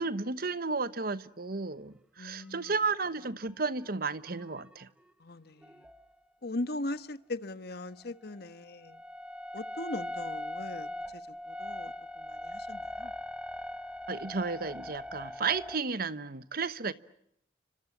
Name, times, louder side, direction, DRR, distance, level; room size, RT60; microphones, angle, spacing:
voice 1, 0.0-4.9 14.1-16.9, right 4 dB, 55° right, 1.1 m, -33 dB
voice 2, 2.2-2.7 5.2-5.8 6.4-9.0 9.5-13.1, left 2 dB, 60° left, 1.3 m, -40 dB
sound 1, 2.7-2.9 3.8-4.1 4.4-5.0 5.6-6.1 8.0-15.8, left 1 dB, 5° right, 1.1 m, -40 dB
30.0 x 25.5 x 7.4 m
head